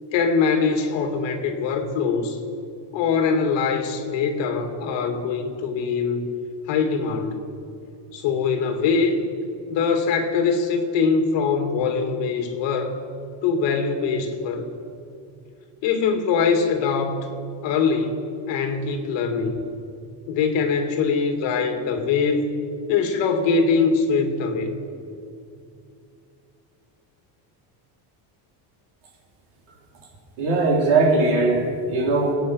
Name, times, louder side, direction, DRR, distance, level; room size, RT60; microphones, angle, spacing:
voice 1, 0.1-2.4 2.9-6.2 6.7-7.4 8.1-9.2 9.7-13.0 13.4-14.7 15.8-17.3 17.6-18.2 18.5-19.6 20.3-22.6 22.9-24.7, left 5 dB, 60° left, 5 dB, 2.3 m, -22 dB
voice 2, 30.4-32.3, right 3 dB, 70° right, -1 dB, 4.2 m, -20 dB
27.5 x 9.2 x 5.7 m, 2.5 s
cardioid pair, 160°, 50 cm